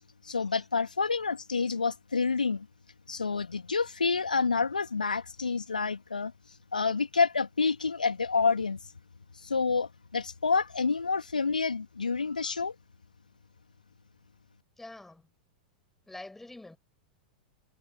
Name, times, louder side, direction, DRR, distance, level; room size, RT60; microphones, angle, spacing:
voice 1, 0.2-2.7 3.1-6.3 6.7-8.8 9.4-12.7, left 4 dB, 80° left, 2.8 m, -28 dB
voice 2, 14.8-15.3 16.1-16.8, left 2 dB, 5° left, 6.9 m, -46 dB
figure-of-eight pair, 95°, 4 cm